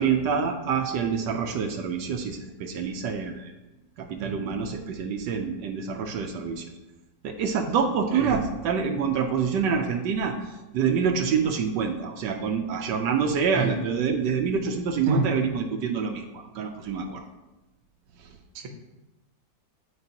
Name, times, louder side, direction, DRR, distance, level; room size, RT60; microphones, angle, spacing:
voice 1, 0.0-3.5 4.0-6.7 7.2-17.2 18.2-18.4, right 6 dB, 80° right, 4 dB, 1.2 m, -27 dB
voice 2, 8.1-8.4 13.5-13.8 15.1-15.3 18.5-18.7, right 3 dB, 55° right, 3 dB, 1.1 m, -26 dB
9.6 x 4.4 x 2.8 m, 1.1 s
omnidirectional pair, 1.9 m